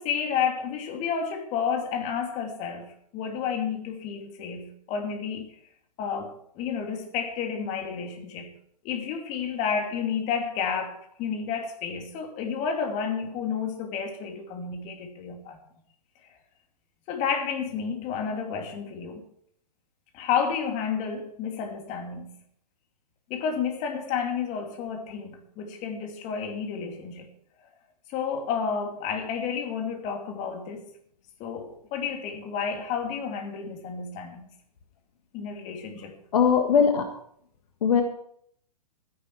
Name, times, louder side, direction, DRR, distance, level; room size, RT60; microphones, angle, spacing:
voice 1, 0.0-2.9 3.1-5.5 6.0-8.5 8.8-15.6 17.1-19.2 20.1-22.3 23.3-27.3 28.1-30.8 31.4-34.4 35.3-36.2, left 6 dB, 35° left, 2.7 m, -31 dB
voice 2, 36.3-37.1 37.8-38.0, left 7 dB, 65° left, 1.6 m, -20 dB
13.0 x 10.5 x 4.7 m
hypercardioid pair, 115°, 21 cm